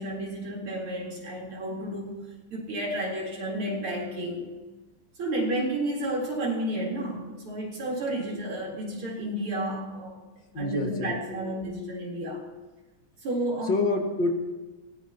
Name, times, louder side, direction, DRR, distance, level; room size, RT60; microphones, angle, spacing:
voice 1, 0.0-2.2 2.5-4.5 5.2-10.2 10.6-12.4 13.2-13.8, right 1 dB, 90° right, -2 dB, 4.8 m, -31 dB
voice 2, 10.5-11.6 13.6-14.3, left 2 dB, 60° left, 1 dB, 2.7 m, -28 dB
24.5 x 19.5 x 3.0 m, 1.2 s
omnidirectional pair, 2.3 m